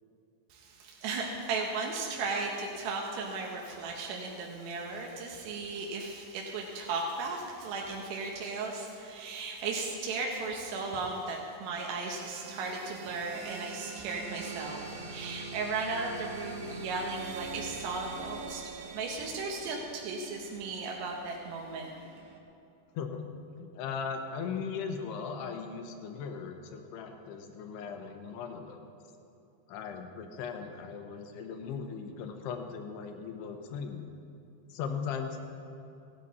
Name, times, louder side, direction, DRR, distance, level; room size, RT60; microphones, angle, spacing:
voice 1, 0.5-18.6 18.9-21.9, right 3 dB, 85° right, -1 dB, 3.4 m, -36 dB
sound 1, 12.2-22.4, right 4 dB, 60° right, 1.9 m, -44 dB
voice 2, 23.6-28.8 29.7-34.1 34.7-35.4, left 6 dB, 80° left, 5 dB, 3.0 m, -38 dB
17.0 x 13.5 x 4.1 m, 2.8 s
omnidirectional pair, 4.8 m